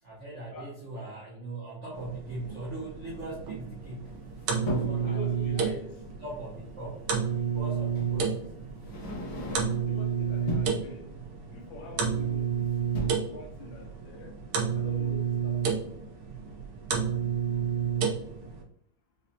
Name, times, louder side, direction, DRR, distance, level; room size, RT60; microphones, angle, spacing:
voice 1, 0.0-4.1 4.6-7.1 7.3-8.5, right 2 dB, 70° right, -5 dB, 0.6 m, -40 dB
sound 1, 1.9-18.6, right 7 dB, 90° right, 1.7 m, -31 dB
sound 2, 4.0-5.1 6.7-6.8 7.9-8.2 8.7-10.0 10.3-10.8 12.2-12.5 12.8-13.1, left 2 dB, 90° left, 0.6 m, -36 dB
voice 2, 5.0-6.0 9.8-11.1 11.5-12.5 13.3-14.3 14.7-15.8, left 3 dB, 75° left, 2 dB, 1.2 m, -44 dB
5.3 x 2.1 x 2.6 m, 0.71 s
omnidirectional pair, 2.3 m